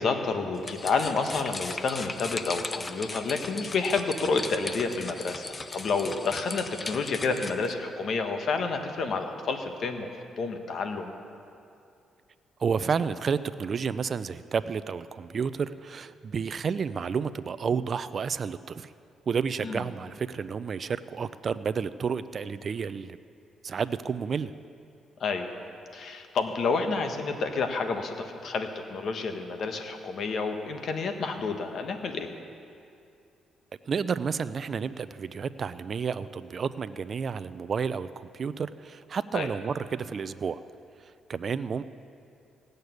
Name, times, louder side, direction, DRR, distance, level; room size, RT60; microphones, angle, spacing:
voice 1, 0.0-11.1 19.6-19.8 25.2-25.5 25.9-32.3 39.3-39.5, left 4 dB, 60° left, 6 dB, 1.4 m, -29 dB
sound 1, 0.5-7.7, left 3 dB, 30° left, 0.7 m, -38 dB
voice 2, 12.6-18.9 19.3-23.2 23.6-24.5 33.9-40.6 41.0-41.9, right 6 dB, 45° right, 13 dB, 0.4 m, -31 dB
16.5 x 6.6 x 9.4 m, 2.5 s
cardioid pair, 90°, 0 cm